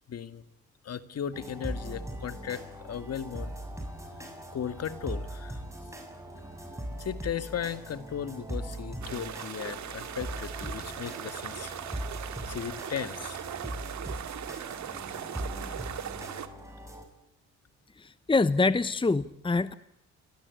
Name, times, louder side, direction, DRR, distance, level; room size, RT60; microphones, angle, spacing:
voice 1, 0.1-0.4 0.8-3.9 4.5-5.6 7.0-11.7 12.5-13.4, left 8 dB, 55° left, 12 dB, 2.2 m, -36 dB
sound 1, 1.3-17.0, right 1 dB, 10° right, 7.5 m, -40 dB
sound 2, 9.0-16.5, right 9 dB, 65° right, 2.4 m, -39 dB
voice 2, 18.0-19.7, left 3 dB, 15° left, 15 dB, 1.0 m, -25 dB
29.5 x 23.5 x 8.4 m, 0.76 s
cardioid pair, 90°, 30 cm